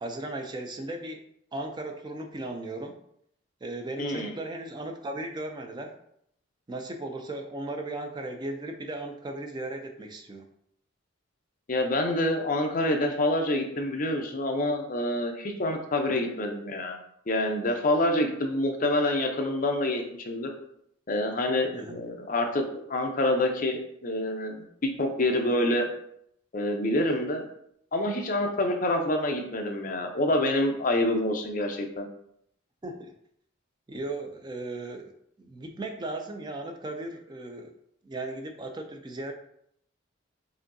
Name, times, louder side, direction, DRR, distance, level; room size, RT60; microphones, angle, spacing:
voice 1, 0.0-1.2 1.5-2.9 3.6-5.9 6.7-10.4 21.7-22.0 32.8-33.1 33.9-35.1 35.4-37.7 38.0-39.3, right 2 dB, 20° right, 4 dB, 0.3 m, -36 dB
voice 2, 4.0-4.3 11.7-17.0 17.3-20.5 21.1-22.6 22.9-24.7 25.0-25.9 26.5-27.5 27.9-32.1, left 1 dB, 40° left, 3 dB, 0.5 m, -27 dB
5.0 x 2.7 x 2.6 m, 0.71 s
head